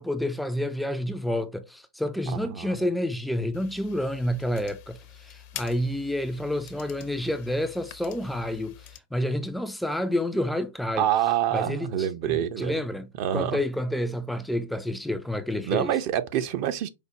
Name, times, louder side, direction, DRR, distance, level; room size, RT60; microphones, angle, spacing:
voice 1, 0.0-11.1 11.5-15.9, left 1 dB, ahead, 0.4 m, -29 dB
voice 2, 2.3-2.7 11.0-12.8 13.2-13.6 15.6-16.9, right 10 dB, 45° right, 0.6 m, -26 dB
sound 1, 3.5-9.0, left 11 dB, 45° left, 0.6 m, -46 dB
5.0 x 2.1 x 4.1 m
hypercardioid pair, 105°, 0 cm